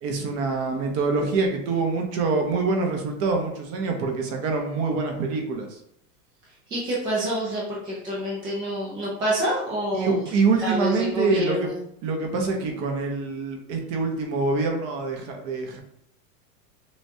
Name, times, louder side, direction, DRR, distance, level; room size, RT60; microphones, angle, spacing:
voice 1, 0.0-5.8 9.9-11.7 12.0-15.8, right 4 dB, 30° right, 2 dB, 0.8 m, -25 dB
voice 2, 6.7-10.2 10.6-11.8, equal, 10° right, -6 dB, 0.4 m, -27 dB
6.0 x 2.3 x 2.8 m, 0.74 s
hypercardioid pair, 135°, 48 cm